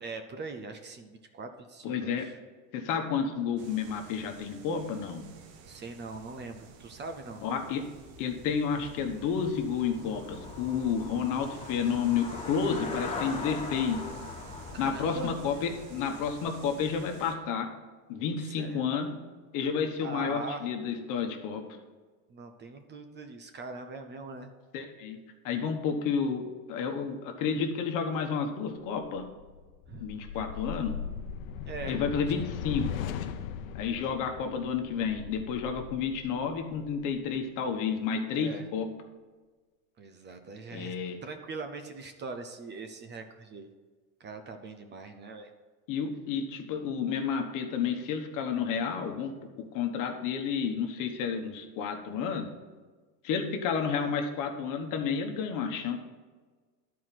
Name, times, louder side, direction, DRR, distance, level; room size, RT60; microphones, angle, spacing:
voice 1, 0.0-2.4 5.7-7.4 14.7-15.3 18.6-18.9 20.0-20.7 22.3-24.5 29.9-30.1 30.3-30.5 31.7-32.0 32.2-32.3 38.3-38.6 40.0-40.9 41.2-43.7 44.2-45.5, right 3 dB, 25° right, 7 dB, 0.7 m, -41 dB
voice 2, 1.8-2.3 2.7-5.3 7.4-7.8 8.2-14.0 14.8-17.7 18.1-19.2 19.5-21.6 24.7-25.2 25.4-26.4 26.7-29.2 30.0-31.0 31.9-32.9 33.7-38.9 40.7-41.2 45.9-52.5 53.2-56.0, left 6 dB, 50° left, 5 dB, 1.2 m, -31 dB
sound 1, 3.6-17.4, right 5 dB, 65° right, 1.2 m, -51 dB
Traffic noise roadway noise / Bicycle, 8.0-17.2, left 4 dB, 15° left, 0.7 m, -42 dB
sound 2, 29.0-37.4, left 8 dB, 90° left, 0.8 m, -39 dB
11.0 x 4.8 x 5.9 m, 1.4 s
supercardioid pair, 130°, 39 cm